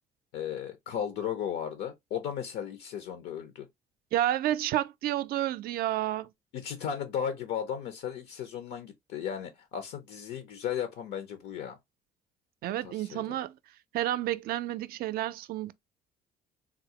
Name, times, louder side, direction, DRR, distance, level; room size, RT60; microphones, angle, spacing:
voice 1, 0.3-3.7 6.5-11.8 12.8-13.4, left 8 dB, 80° left, 0.7 m, -35 dB
voice 2, 4.1-6.3 12.6-13.6 13.9-15.7, right 13 dB, 65° right, 0.4 m, -30 dB
3.6 x 2.0 x 2.8 m
cardioid pair, 110°, 17 cm